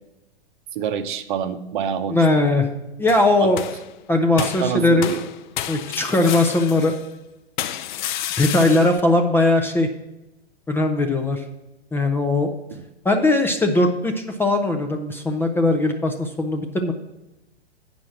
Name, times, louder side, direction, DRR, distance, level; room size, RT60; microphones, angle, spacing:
voice 1, 0.7-2.4 3.4-3.5 4.4-5.3 12.7-12.8, right 8 dB, 50° right, 10 dB, 0.9 m, -27 dB
voice 2, 2.1-2.7 3.0-3.6 4.1-5.1 5.7-6.9 8.4-9.9 10.7-11.4 11.9-12.5 13.0-16.9, left 2 dB, 5° left, 5 dB, 0.6 m, -19 dB
sound 1, 3.1-3.9 4.4-7.1 7.6-9.0, left 11 dB, 45° left, 0.6 m, -30 dB
8.7 x 6.1 x 5.9 m, 0.95 s
hypercardioid pair, 115°, 32 cm